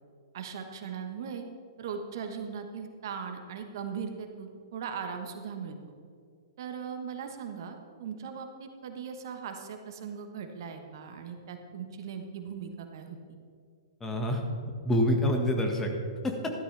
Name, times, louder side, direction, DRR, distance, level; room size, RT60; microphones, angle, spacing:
voice 1, 0.3-1.5 1.8-5.9 6.6-13.2, right 6 dB, 60° right, 5 dB, 1.3 m, -39 dB
voice 2, 14.0-15.9 16.2-16.5, equal, 15° left, 2 dB, 1.6 m, -27 dB
13.5 x 12.0 x 3.4 m, 2.2 s
hypercardioid pair, 115°, 2 cm